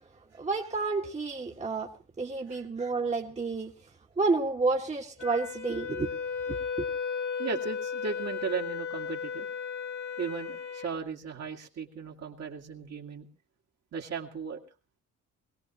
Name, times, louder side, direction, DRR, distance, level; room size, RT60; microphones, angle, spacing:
voice 1, 0.4-1.9 2.2-3.7 4.2-6.1 6.5-6.9, right 3 dB, 25° right, 1.6 m, -30 dB
Wind instrument woodwind instrument, 5.2-10.9, left 6 dB, 65° left, 3.0 m, -35 dB
voice 2, 7.4-9.5 10.2-13.3 13.9-14.6, right 5 dB, 60° right, 2.3 m, -36 dB
21.0 x 17.0 x 3.0 m
cardioid pair, 90°, 30 cm